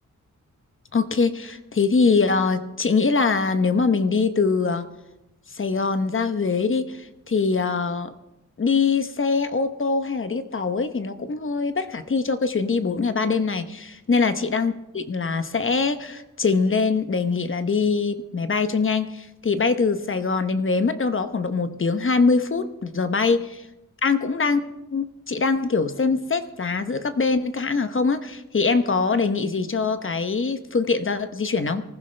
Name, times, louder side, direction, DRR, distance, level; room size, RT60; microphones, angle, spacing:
voice 1, 0.9-4.9 5.5-8.1 8.6-23.6 24.0-24.6 24.9-31.8, left 4 dB, 40° left, 9 dB, 0.9 m, -23 dB
24.0 x 15.0 x 3.3 m, 0.95 s
wide cardioid pair, 140°, 31 cm